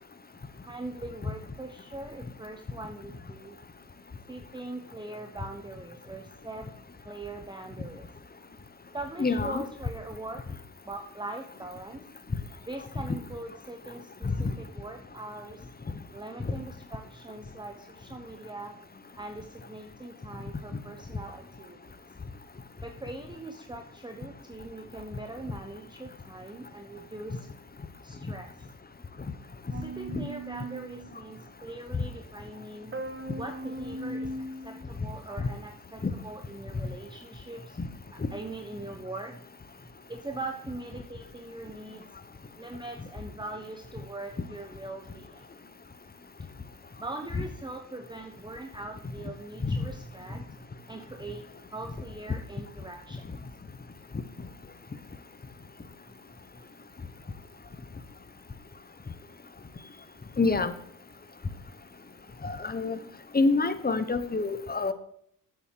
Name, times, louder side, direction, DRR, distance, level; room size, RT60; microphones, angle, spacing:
voice 1, 0.6-3.6 4.3-6.7 7.0-8.1 8.9-10.4 10.8-12.0 12.6-15.7 16.1-18.8 19.2-21.8 22.8-27.5 28.0-28.7 29.7-33.0 33.4-37.8 38.1-39.4 40.1-42.1 42.6-45.5 47.0-51.4 51.7-53.3 57.3-57.4, right 2 dB, 10° right, 5 dB, 1.0 m, -41 dB
voice 2, 9.2-9.6 14.2-14.3 30.1-30.2 49.6-49.8 60.4-60.7 62.4-63.0 63.3-64.9, left 3 dB, 20° left, 11 dB, 1.2 m, -26 dB
sound 1, 29.7-31.2 32.9-34.8, right 1 dB, 25° right, 1.6 m, -38 dB
8.6 x 8.1 x 4.7 m, 0.68 s
hypercardioid pair, 50°, 45 cm